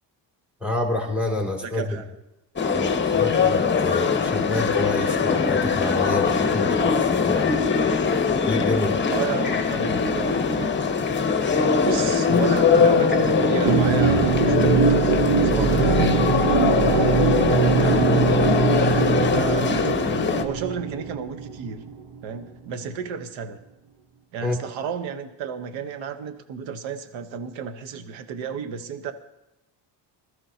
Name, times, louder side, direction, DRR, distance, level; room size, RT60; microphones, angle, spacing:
voice 1, 0.6-1.8 2.7-7.6 8.4-9.0 24.4-24.6, left 2 dB, 5° right, 0 dB, 2.5 m, -28 dB
voice 2, 1.6-2.1 9.1-11.2 11.8-15.0 15.4-16.1 16.8-19.9 20.4-21.8 22.2-23.6 24.3-29.1, right 6 dB, 85° right, 9 dB, 1.0 m, -32 dB
sound 1, 2.6-20.4, left 5 dB, 25° left, 1.1 m, -21 dB
sound 2, 13.6-22.1, right 6 dB, 65° right, 0.9 m, -22 dB
21.0 x 13.5 x 2.8 m, 0.92 s
cardioid pair, 105°, 44 cm